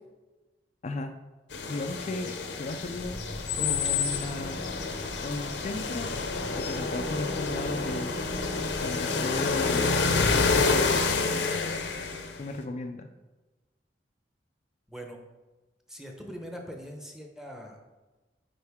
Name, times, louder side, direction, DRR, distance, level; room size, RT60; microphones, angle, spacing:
voice 1, 0.8-1.1 1.7-2.3 2.6-3.1 3.6-4.6 5.2-6.2 6.5-8.4 8.8-9.9 10.4-11.1 12.4-13.1, left 2 dB, 40° left, 5 dB, 0.4 m, -35 dB
sound 1, 1.5-12.4, left 4 dB, 75° left, 0.8 m, -28 dB
voice 2, 14.9-15.2 15.9-17.8, equal, 5° right, 2 dB, 0.8 m, -42 dB
9.0 x 4.4 x 3.6 m, 1.2 s
head